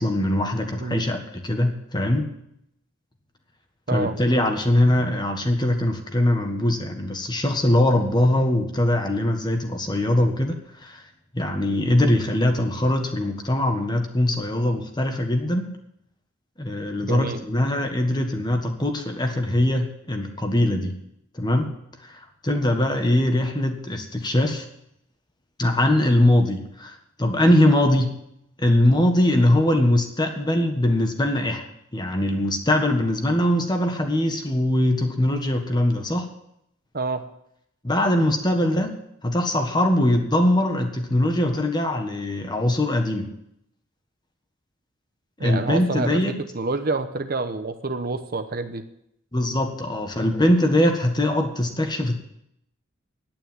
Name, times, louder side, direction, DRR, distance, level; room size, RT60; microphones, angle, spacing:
voice 1, 0.0-2.3 3.9-11.0 11.3-15.7 16.6-20.9 21.3-21.7 22.0-24.6 25.6-28.1 28.6-31.6 31.9-36.3 37.8-38.9 39.2-43.3 45.4-46.4 49.3-52.1, left 1 dB, 20° left, 5 dB, 1.5 m, -22 dB
voice 2, 3.9-4.2 17.0-17.4 36.9-37.3 45.4-46.2 46.5-48.8, right 3 dB, 50° right, 8 dB, 1.0 m, -27 dB
9.8 x 9.0 x 9.4 m, 0.76 s
head